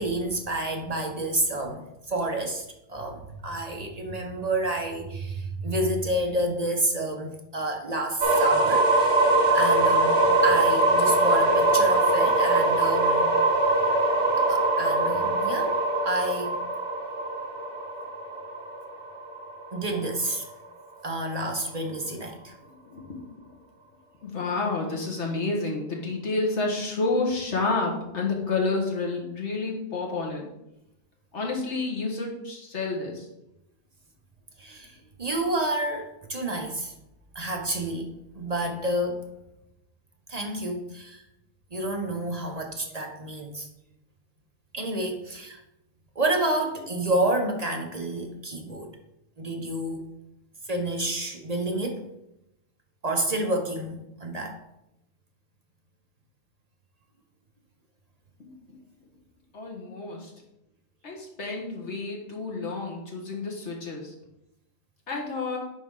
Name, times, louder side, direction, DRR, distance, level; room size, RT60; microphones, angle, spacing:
voice 1, 0.0-9.1 9.5-13.3 14.4-15.7 16.0-16.6 19.7-20.4 21.0-22.5 34.6-36.9 37.3-39.3 40.3-41.2 41.7-43.7 44.7-45.6 46.2-48.9 49.4-50.0 50.7-52.0 53.0-54.6, right 1 dB, 35° right, 2 dB, 0.9 m, -29 dB
sound 1, 8.2-20.0, right 2 dB, 65° right, 1.3 m, -22 dB
voice 2, 22.7-23.2 23.5-23.6 24.2-30.5 31.3-33.3 58.4-58.5 59.5-60.3 61.0-64.1 65.1-65.6, left 3 dB, 60° left, 0 dB, 1.8 m, -29 dB
10.5 x 4.1 x 3.7 m, 0.86 s
omnidirectional pair, 1.3 m